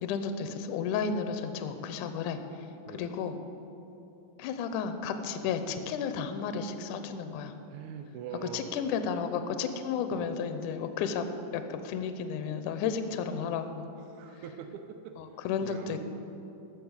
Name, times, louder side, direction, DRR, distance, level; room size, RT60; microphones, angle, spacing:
voice 1, 0.0-3.4 4.4-7.5 8.5-11.3 11.5-13.9 14.4-14.5 15.2-16.0, left 6 dB, 75° left, 8 dB, 2.1 m, -33 dB
voice 2, 7.7-8.7 10.1-10.3 14.1-15.1 15.6-16.0, right 7 dB, 80° right, 7 dB, 1.7 m, -43 dB
13.0 x 7.3 x 8.0 m, 2.9 s
omnidirectional pair, 4.0 m